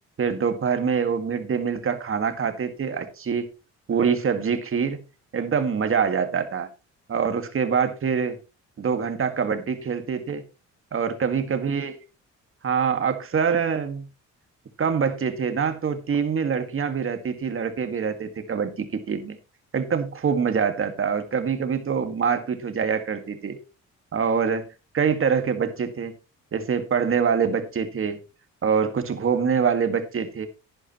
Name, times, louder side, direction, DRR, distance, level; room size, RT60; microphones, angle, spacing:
voice 1, 0.2-3.5 3.9-5.0 5.3-6.7 7.1-8.4 8.8-10.4 10.9-11.9 12.6-14.1 14.8-19.4 19.7-23.6 24.1-24.7 24.9-26.1 26.5-28.2 28.6-30.5, right 6 dB, 45° right, 1.9 m, -25 dB
11.0 x 10.0 x 3.1 m
cardioid pair, 90°, 30 cm